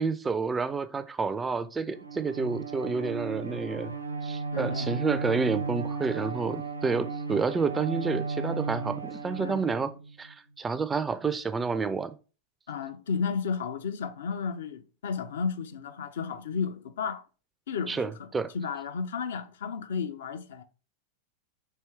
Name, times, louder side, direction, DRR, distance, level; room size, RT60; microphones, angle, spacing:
voice 1, 0.0-3.9 4.2-9.9 10.2-12.2 17.9-18.5, right 4 dB, 15° right, 0.3 m, -29 dB
Bowed string instrument, 1.9-10.3, right 4 dB, 85° right, 0.5 m, -34 dB
voice 2, 4.5-4.9 9.4-9.7 12.7-17.2 17.7-18.3 18.5-20.6, left 6 dB, 60° left, 0.4 m, -33 dB
4.5 x 2.8 x 3.2 m
figure-of-eight pair, 90°, 0 cm